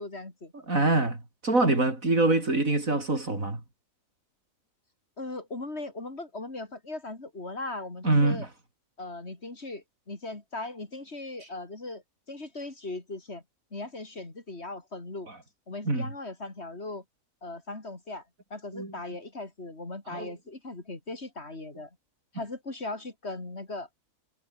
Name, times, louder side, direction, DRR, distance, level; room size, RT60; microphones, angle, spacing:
voice 1, 0.0-0.5 5.2-8.5 9.0-12.0 12.3-13.4 13.7-15.3 15.7-17.0 17.4-18.2 18.5-21.9 22.3-23.9, left 2 dB, 50° left, 3.9 m, -38 dB
voice 2, 0.7-3.6 8.0-8.5 15.9-16.1 18.7-18.9 20.1-20.3, right 2 dB, 80° right, 5.8 m, -25 dB
omnidirectional pair, 1.4 m